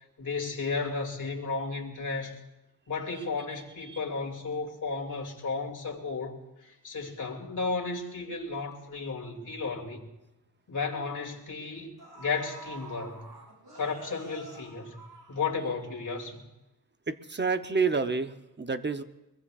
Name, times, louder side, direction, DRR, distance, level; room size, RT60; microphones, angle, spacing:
voice 1, 0.2-2.3 2.9-10.1 10.7-13.2 13.7-15.0 15.3-16.4, left 4 dB, 50° left, 0 dB, 2.5 m, -34 dB
voice 2, 3.5-4.0 17.1-19.0, right 4 dB, 30° right, 9 dB, 0.7 m, -30 dB
sound 1, 10.3-10.5 11.5-11.6 12.0-15.9 16.2-16.3, right 3 dB, 85° right, 7.1 m, -48 dB
23.0 x 22.5 x 2.4 m, 0.95 s
wide cardioid pair, 130°, 38 cm